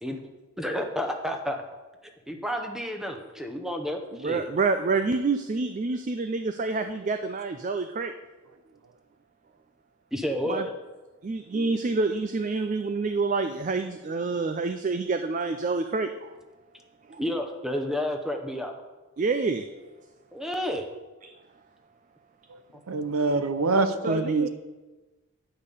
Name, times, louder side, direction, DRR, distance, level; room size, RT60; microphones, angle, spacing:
voice 1, 0.6-1.6 2.3-4.5 10.1-10.7 17.2-18.8 20.3-20.9, equal, ahead, 4 dB, 0.8 m, -30 dB
voice 2, 4.2-8.1 10.5-10.7 11.2-16.3 17.1-17.2 19.2-19.6 24.0-24.5, right 3 dB, 35° right, 8 dB, 0.4 m, -27 dB
voice 3, 22.9-24.5, right 3 dB, 80° right, 10 dB, 0.7 m, -25 dB
10.0 x 5.4 x 6.7 m, 1.2 s
head